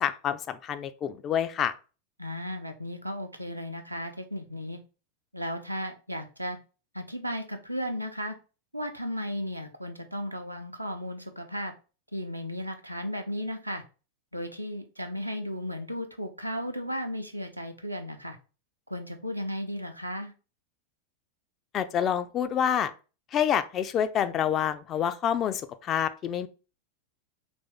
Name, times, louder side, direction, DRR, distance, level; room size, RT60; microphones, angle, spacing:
voice 1, 0.0-1.7 21.7-22.9 23.3-26.5, left 9 dB, 30° left, 10 dB, 0.4 m, -27 dB
voice 2, 2.2-4.8 5.3-6.6 6.9-8.4 8.7-11.7 12.1-13.8 14.3-18.4 18.9-20.3, equal, 85° right, 5 dB, 0.6 m, -35 dB
3.2 x 2.6 x 3.4 m, 0.33 s
figure-of-eight pair, 90°, 0 cm